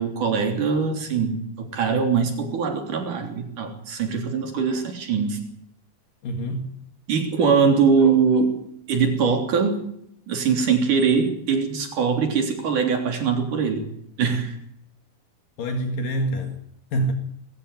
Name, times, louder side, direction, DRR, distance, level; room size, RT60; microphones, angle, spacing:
voice 1, 0.0-5.4 7.1-8.6 8.9-9.9 10.3-13.9 14.2-14.5, right 5 dB, 55° right, 4.6 m, -22 dB
voice 2, 6.2-6.7 15.6-16.6 16.9-17.1, right 1 dB, 65° left, 3.5 m, -26 dB
23.5 x 14.0 x 9.3 m
omnidirectional pair, 4.4 m